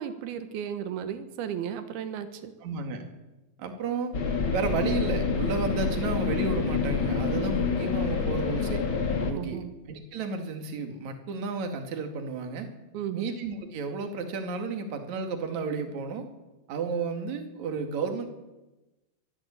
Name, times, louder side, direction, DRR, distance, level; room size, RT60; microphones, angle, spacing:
voice 1, 0.0-2.5 9.2-9.7 12.9-13.2, right 9 dB, 90° right, 9 dB, 3.2 m, -34 dB
voice 2, 2.6-3.0 3.6-4.2 4.5-8.8 9.2-12.7 13.1-16.3 16.7-18.3, right 4 dB, 50° right, 6 dB, 3.3 m, -32 dB
sound 1, 4.1-9.3, left 5 dB, 40° left, 2.1 m, -27 dB
22.5 x 14.0 x 8.4 m, 1.1 s
omnidirectional pair, 4.4 m